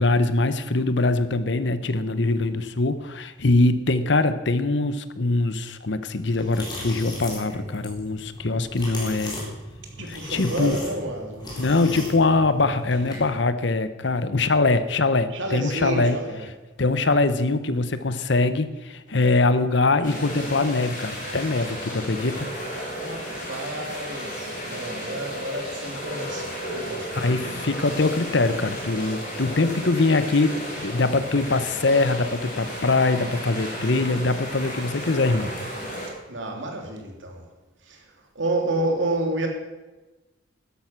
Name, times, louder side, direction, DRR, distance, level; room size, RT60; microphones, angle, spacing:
voice 1, 0.0-9.4 10.0-10.8 11.6-16.2 16.8-22.5 27.2-35.5, left 3 dB, 65° left, 12 dB, 0.9 m, -23 dB
sound 1, 6.4-13.3, left 1 dB, 25° left, 4.2 m, -37 dB
voice 2, 10.0-11.8 15.3-16.5 22.7-27.5 28.4-28.6 36.3-37.5 37.8-38.0 38.3-39.5, right 2 dB, 75° right, 2 dB, 2.9 m, -30 dB
sound 2, 20.0-36.1, equal, 45° left, 4.3 m, -34 dB
13.0 x 11.0 x 5.9 m, 1.1 s
head